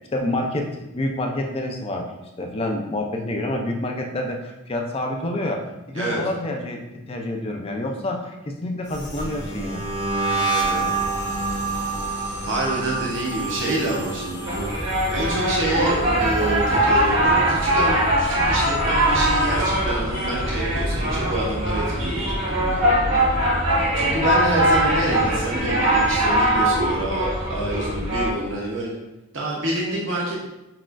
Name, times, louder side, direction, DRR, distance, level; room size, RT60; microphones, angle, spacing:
voice 1, 0.1-6.8 7.1-9.8, left 1 dB, 30° left, 2 dB, 0.4 m, -28 dB
sound 1, 8.9-18.0 18.3-18.8 19.1-20.6, right 3 dB, 60° left, 1.1 m, -29 dB
voice 2, 10.3-10.9 12.4-14.7 15.1-22.8 23.9-29.0 29.3-30.4, right 1 dB, 65° right, -3 dB, 0.7 m, -27 dB
sound 2, 14.5-28.3, right 1 dB, 85° right, 1.5 m, -21 dB
5.7 x 2.4 x 2.4 m, 0.96 s
head